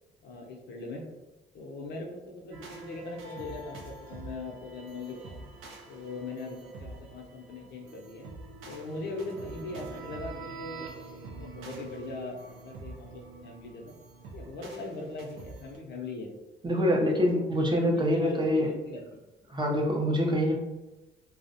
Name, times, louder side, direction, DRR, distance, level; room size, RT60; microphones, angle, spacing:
voice 1, 0.2-1.1 1.5-5.5 5.9-8.3 8.7-13.9 14.3-16.3 16.7-17.2 17.5-19.3, left 2 dB, 60° left, 1 dB, 0.5 m, -40 dB
sound 1, 2.5-15.8, right 3 dB, 85° right, 0.5 m, -46 dB
voice 2, 16.6-18.7 19.5-20.5, equal, 25° right, 0 dB, 0.5 m, -25 dB
2.4 x 2.0 x 2.6 m, 1.0 s
cardioid pair, 90°, 20 cm